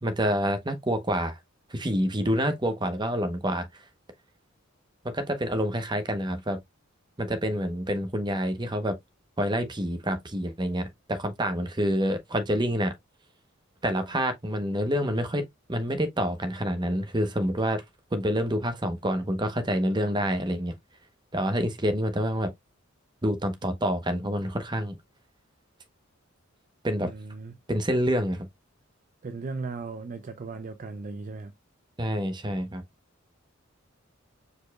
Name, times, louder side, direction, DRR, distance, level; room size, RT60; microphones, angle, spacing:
voice 1, 0.0-1.4 1.7-3.7 5.0-6.6 7.2-8.9 9.4-12.9 13.8-17.8 18.1-20.7 21.3-22.5 23.2-24.9 26.8-27.1 27.7-28.5 32.0-32.8, equal, 20° right, 0.9 m, -27 dB
voice 2, 27.0-27.6 29.2-31.5, right 4 dB, 40° right, 0.4 m, -37 dB
4.8 x 4.2 x 2.3 m
head